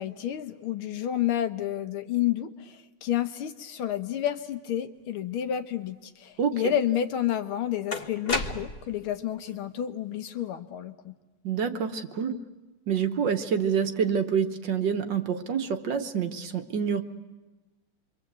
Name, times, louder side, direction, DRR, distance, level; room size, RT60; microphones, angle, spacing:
voice 1, 0.0-11.1, left 10 dB, 90° left, 8 dB, 2.0 m, -30 dB
voice 2, 6.4-6.7 11.4-12.4 12.9-17.0, right 7 dB, 60° right, 7 dB, 1.7 m, -27 dB
sound 1, 6.9-7.0 7.9-9.0, left 3 dB, 35° left, 1.2 m, -31 dB
27.0 x 24.0 x 8.1 m, 1.2 s
omnidirectional pair, 2.3 m